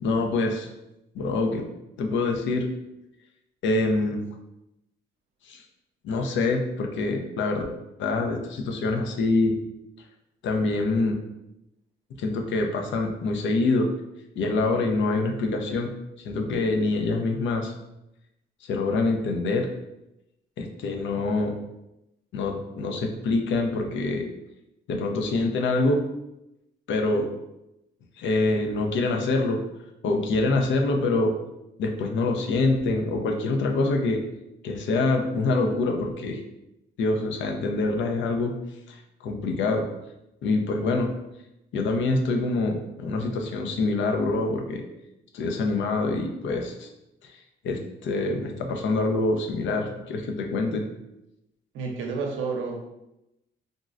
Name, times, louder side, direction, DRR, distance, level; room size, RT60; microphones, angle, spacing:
voice 1, 0.0-0.7 1.1-1.6 2.0-2.7 3.6-4.2 5.5-5.6 6.0-7.6 8.0-9.5 10.4-11.2 12.2-13.9 14.4-15.9 16.2-17.7 18.6-19.7 20.6-21.6 22.3-24.3 24.9-26.0 26.9-27.3 28.2-29.6 30.0-31.3 31.8-34.2 34.6-36.4 37.0-38.5 38.9-39.9 40.4-41.1 41.7-44.8 45.3-46.9 47.2-47.3 47.6-50.8, left 3 dB, 75° left, 3 dB, 0.5 m, -25 dB
voice 2, 51.7-52.9, right 4 dB, 85° right, 1 dB, 0.6 m, -30 dB
3.6 x 2.1 x 2.4 m, 0.89 s
cardioid pair, 90°, 20 cm